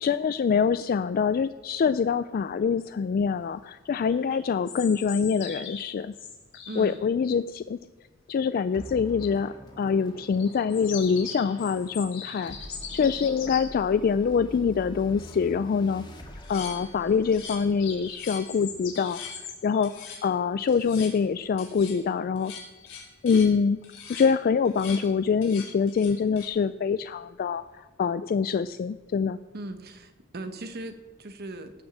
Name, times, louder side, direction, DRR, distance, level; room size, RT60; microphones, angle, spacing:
voice 1, 0.0-6.1 6.8-7.8 8.3-12.6 12.9-16.0 16.5-19.2 19.6-22.5 23.2-23.8 24.1-29.4, left 6 dB, 45° left, 13 dB, 0.3 m, -25 dB
sound 1, 4.1-7.0 10.3-13.6 17.2-20.0, left 6 dB, 65° left, 3.8 m, -40 dB
voice 2, 6.7-7.0 29.5-31.7, right 2 dB, 55° right, 8 dB, 1.0 m, -38 dB
sound 2, 8.7-19.5, left 1 dB, 25° left, 1.8 m, -46 dB
sound 3, 16.4-17.7 18.1-18.5 18.9-19.4 19.8-20.2 20.7-21.1 21.6-22.0 22.4-23.6 23.8-24.3 24.6-25.0 25.4-26.5, left 6 dB, 85° left, 4.0 m, -42 dB
18.0 x 6.2 x 7.3 m, 1.3 s
head